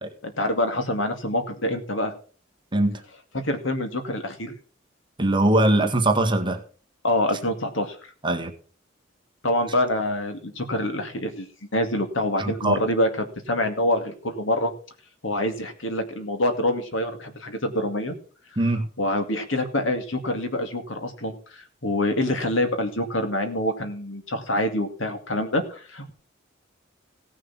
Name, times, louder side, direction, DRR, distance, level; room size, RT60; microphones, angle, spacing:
voice 1, 0.2-2.1 3.3-4.5 7.0-8.0 9.4-11.5 11.7-14.7 15.2-18.1 19.0-26.1, left 1 dB, 75° left, 2.3 m, -26 dB
voice 2, 5.2-6.6 8.2-8.5 12.4-12.8 18.5-18.8, right 1 dB, 25° right, 1.7 m, -21 dB
17.0 x 6.4 x 5.8 m
head